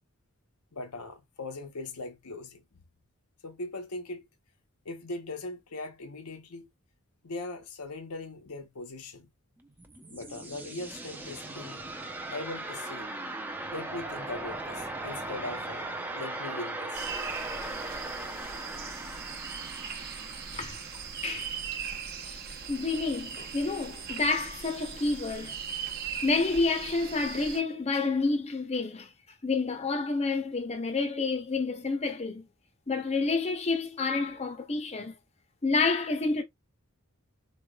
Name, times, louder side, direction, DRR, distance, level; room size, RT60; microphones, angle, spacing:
voice 1, 0.7-2.6 3.4-4.2 4.8-6.7 7.2-9.3 10.1-11.9 12.3-13.1 13.7-17.1, left 2 dB, 85° left, 0.9 m, -40 dB
sound 1, 9.6-22.4, right 2 dB, 10° right, 0.6 m, -39 dB
sound 2, 16.9-27.6, right 7 dB, 45° right, 0.9 m, -39 dB
voice 2, 21.2-21.6 22.7-25.6 26.2-29.1 29.4-32.5 32.9-35.1 35.6-36.4, left 3 dB, 30° left, 0.7 m, -29 dB
4.2 x 3.2 x 2.3 m
head